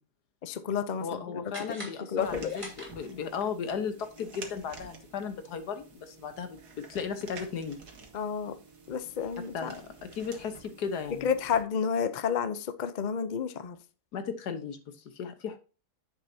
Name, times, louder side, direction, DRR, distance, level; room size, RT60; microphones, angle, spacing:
voice 1, 0.4-1.2 1.8-2.6 8.1-8.6 8.9-9.7 11.2-13.8, left 7 dB, 50° left, 0.5 m, -30 dB
voice 2, 1.0-7.8 9.4-11.3 14.1-15.6, left 6 dB, 80° left, 1.7 m, -36 dB
sound 1, 1.5-3.4, equal, 20° right, 3.0 m, -45 dB
sound 2, 2.2-11.6, right 4 dB, 85° right, 2.2 m, -50 dB
10.0 x 7.4 x 2.8 m
omnidirectional pair, 1.7 m